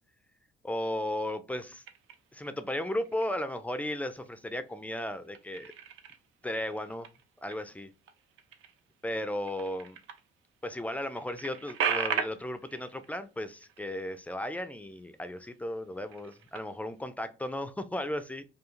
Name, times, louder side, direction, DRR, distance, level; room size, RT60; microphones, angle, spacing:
voice 1, 0.6-1.8 2.3-5.7 6.4-7.1 7.4-7.9 9.0-10.0 10.6-18.4, left 1 dB, 5° left, 0.3 m, -35 dB
sound 1, 1.8-2.5 3.0-3.6 4.0-4.8 5.1-10.3 10.6-10.7 10.9-14.9 15.2-15.5 15.9-17.0, right 7 dB, 80° right, 0.5 m, -38 dB
2.4 x 2.3 x 2.9 m
cardioid pair, 90°, 20 cm